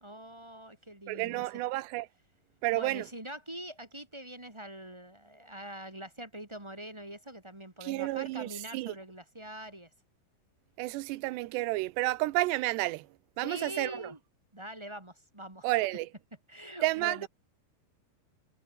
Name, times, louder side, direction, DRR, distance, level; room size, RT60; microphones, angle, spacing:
voice 1, 0.0-1.4 2.7-9.9 13.4-14.2 14.5-15.7 16.5-17.3, right 1 dB, 10° right, 1.6 m, -44 dB
voice 2, 1.1-2.1 2.6-3.1 7.8-8.9 10.8-13.1 13.4-14.1 15.6-16.1 16.8-17.3, right 19 dB, 85° right, 2.9 m, -31 dB
omnidirectional pair, 4.8 m